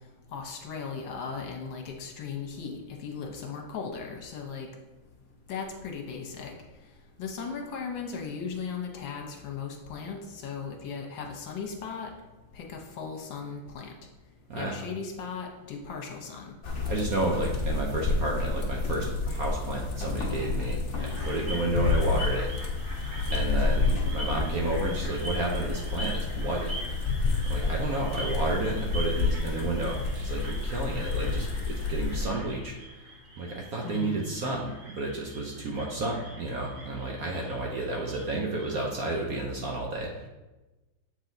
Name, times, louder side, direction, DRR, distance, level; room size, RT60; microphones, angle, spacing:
voice 1, 0.3-4.7 5.5-6.5 7.2-12.1 12.5-13.9 14.5-16.5 33.8-34.2, left 5 dB, 70° left, 1 dB, 1.6 m, -37 dB
sound 1, 16.6-32.2, left 3 dB, 45° left, 1.1 m, -29 dB
voice 2, 16.8-22.5 23.3-26.7 27.4-32.8 33.4-40.2, right 2 dB, 65° right, -1 dB, 0.9 m, -31 dB
sound 2, 21.0-38.8, equal, 90° right, 2.6 m, -43 dB
7.2 x 3.9 x 3.9 m, 1.1 s
omnidirectional pair, 2.1 m